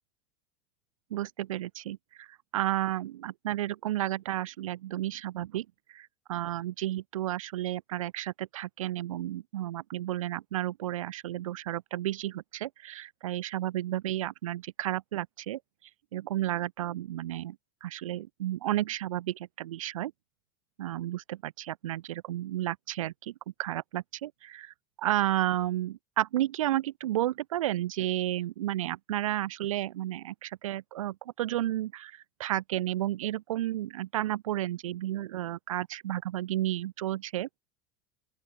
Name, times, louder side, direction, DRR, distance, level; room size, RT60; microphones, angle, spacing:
voice 1, 1.1-2.3 2.5-15.6 16.1-17.6 17.8-20.1 20.8-23.3 23.6-37.5, right 14 dB, 80° right, 3.5 m, -32 dB
open air
hypercardioid pair, 95°, 17 cm